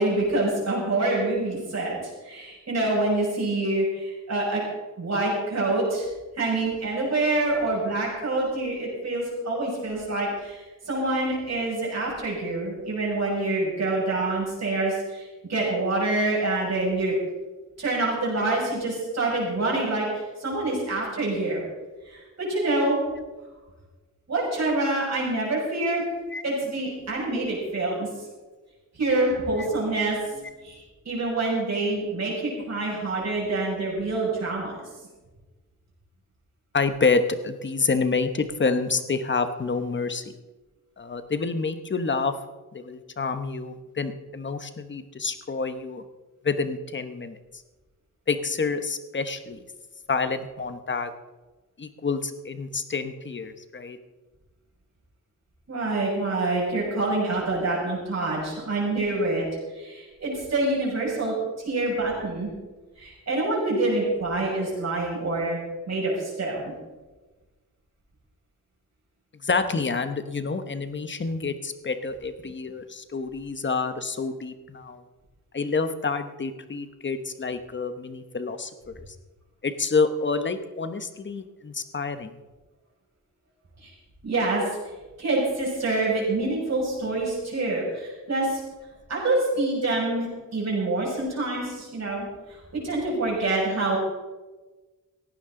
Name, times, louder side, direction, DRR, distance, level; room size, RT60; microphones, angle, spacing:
voice 1, 0.0-4.6 5.0-6.1 6.4-17.1 17.8-21.6 22.0-23.0 24.3-26.0 26.4-28.3 28.9-34.8 55.7-59.5 59.7-62.5 63.0-66.7 83.8-83.9 84.2-84.8 85.2-88.6 89.1-94.0, right 2 dB, 50° right, -4 dB, 6.4 m, -26 dB
voice 2, 36.7-40.4 41.0-42.4 42.7-46.0 46.4-47.4 48.3-49.6 50.1-51.1 51.8-54.0 69.4-75.0 75.5-79.0 79.6-82.4, left 4 dB, 35° left, 9 dB, 1.0 m, -28 dB
17.5 x 15.5 x 3.8 m, 1.2 s
wide cardioid pair, 170°, 33 cm